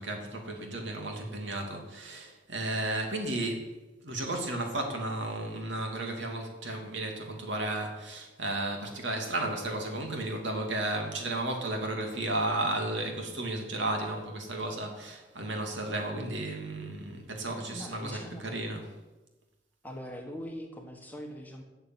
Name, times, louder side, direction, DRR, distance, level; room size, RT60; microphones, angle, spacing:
voice 1, 0.0-3.7 4.0-18.9, right 2 dB, 60° right, 2 dB, 2.7 m, -33 dB
voice 2, 17.7-18.6 19.8-21.6, equal, 10° left, 2 dB, 1.5 m, -42 dB
12.5 x 7.0 x 9.2 m, 1.1 s
head